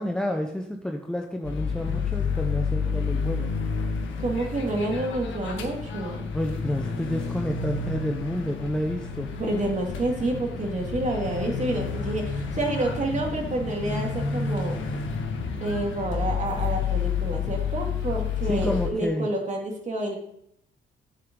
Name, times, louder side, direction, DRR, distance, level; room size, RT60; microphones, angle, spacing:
voice 1, 0.0-3.5 6.3-9.3 18.4-19.3, equal, 5° left, 3 dB, 0.8 m, -30 dB
sound 1, 1.4-18.9, left 5 dB, 75° left, 1.6 m, -30 dB
voice 2, 4.2-6.3 9.4-14.8 15.6-20.2, right 2 dB, 35° right, 1 dB, 2.5 m, -29 dB
7.9 x 7.5 x 3.8 m, 0.73 s
cardioid pair, 90°, 20 cm